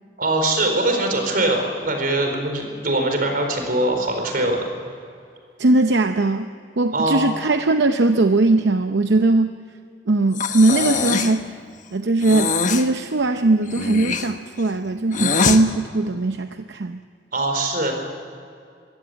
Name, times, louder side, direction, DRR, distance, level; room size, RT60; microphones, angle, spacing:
voice 1, 0.2-4.7 6.9-7.2 17.3-17.9, right 2 dB, 55° right, 4 dB, 4.3 m, -22 dB
voice 2, 5.6-6.5 6.8-9.6 10.1-11.6 11.9-17.0, right 2 dB, 80° right, 8 dB, 0.7 m, -19 dB
Breathing, 10.3-11.4 12.2-12.9 13.6-15.6, left 5 dB, 45° left, 1.2 m, -23 dB
22.5 x 16.5 x 8.0 m, 2.4 s
head